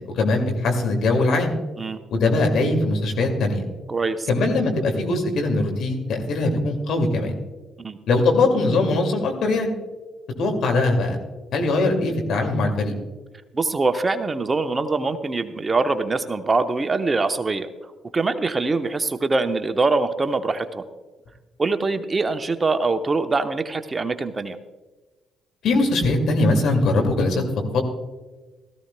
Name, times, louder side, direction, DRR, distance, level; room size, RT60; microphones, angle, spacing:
voice 1, 0.1-1.6 2.1-3.6 4.3-7.4 8.1-9.7 10.4-11.2 11.5-12.9 25.6-27.4 27.7-27.8, left 2 dB, 65° left, 3 dB, 2.2 m, -21 dB
voice 2, 3.9-4.3 7.8-8.0 13.5-17.7 18.1-20.8 21.6-24.6, right 3 dB, 30° right, 9 dB, 0.9 m, -23 dB
17.5 x 14.0 x 2.2 m, 1.2 s
hypercardioid pair, 45°, 0 cm